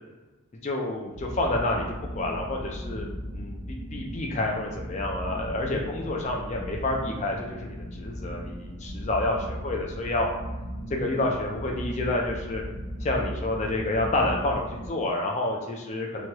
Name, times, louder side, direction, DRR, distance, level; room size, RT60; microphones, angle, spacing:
voice 1, 0.6-3.1 3.3-10.3 10.9-12.6 13.0-16.3, left 2 dB, 35° left, 0 dB, 0.3 m, -29 dB
sound 1, 1.1-14.9, equal, 90° right, 0.8 m, -37 dB
3.0 x 2.2 x 2.9 m, 1.2 s
head